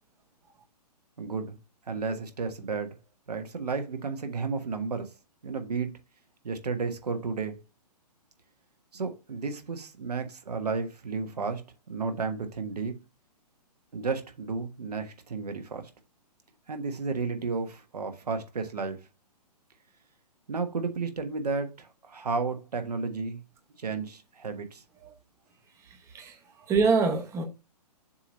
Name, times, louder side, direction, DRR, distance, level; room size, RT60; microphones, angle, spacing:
voice 1, 1.2-1.6 1.9-3.0 3.3-5.1 5.4-5.9 6.4-7.6 8.9-11.6 11.9-12.9 13.9-15.9 16.7-19.0 20.5-23.4 23.8-24.8, right 4 dB, 70° right, 1.3 m, -32 dB
voice 2, 26.7-27.4, right 4 dB, 15° right, 0.8 m, -24 dB
7.0 x 2.9 x 5.2 m
figure-of-eight pair, 125°, 21 cm